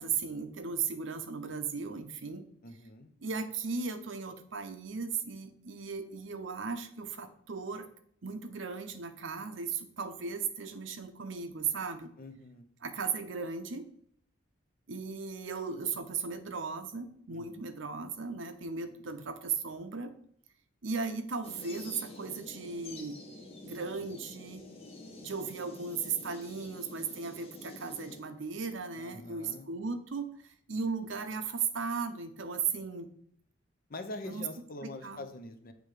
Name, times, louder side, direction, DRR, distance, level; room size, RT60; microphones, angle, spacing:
voice 1, 0.0-2.4 3.2-7.9 8.2-12.1 12.8-13.9 14.9-20.1 20.8-23.2 23.6-24.6 25.2-33.1 34.2-34.4 34.8-35.2, right 5 dB, 70° right, 9 dB, 0.7 m, -36 dB
voice 2, 2.6-3.1 12.2-12.6 17.3-17.6 28.9-29.7 33.9-35.7, left 2 dB, 45° left, 8 dB, 0.7 m, -44 dB
sound 1, 21.4-28.2, left 2 dB, 30° left, 1.3 m, -48 dB
7.7 x 3.3 x 4.9 m, 0.62 s
head